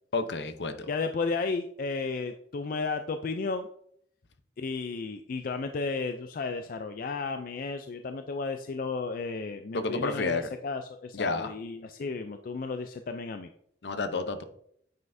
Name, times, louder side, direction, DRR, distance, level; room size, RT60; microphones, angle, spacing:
voice 1, 0.1-0.9 9.7-10.5 11.1-11.5 13.8-14.4, left 3 dB, 70° left, 9 dB, 0.7 m, -30 dB
voice 2, 0.9-3.7 4.6-13.5, left 4 dB, 50° left, 7 dB, 0.4 m, -33 dB
9.1 x 5.5 x 2.6 m, 0.68 s
head